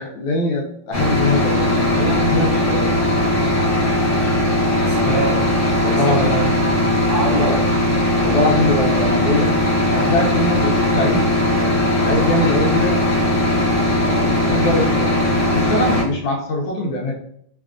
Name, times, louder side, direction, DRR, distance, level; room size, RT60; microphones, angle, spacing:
voice 1, 0.0-2.9 4.9-5.2 5.8-6.3 7.3-7.6 8.2-9.6 9.9-13.2 13.9-17.1, left 1 dB, 75° left, 0 dB, 1.3 m, -23 dB
sound 1, 0.9-16.0, left 1 dB, 60° left, 0.3 m, -18 dB
voice 2, 4.7-5.6 5.9-7.6, right 2 dB, 70° right, -3 dB, 0.9 m, -26 dB
3.4 x 2.2 x 2.4 m, 0.67 s
omnidirectional pair, 2.3 m